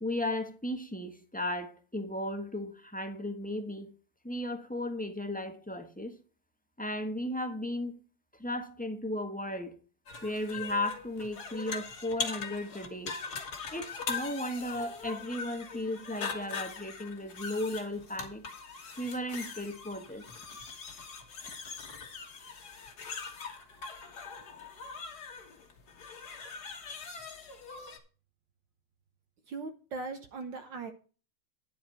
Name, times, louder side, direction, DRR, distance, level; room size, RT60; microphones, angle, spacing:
voice 1, 0.0-3.9 4.2-6.1 6.8-7.9 8.3-9.7 10.2-13.2 13.7-18.4 19.0-20.2, left 1 dB, 5° left, 1.1 m, -35 dB
sound 1, 10.1-28.0, left 5 dB, 50° left, 2.0 m, -41 dB
voice 2, 29.5-30.9, right 4 dB, 60° right, 1.7 m, -39 dB
10.5 x 7.9 x 4.3 m
omnidirectional pair, 2.3 m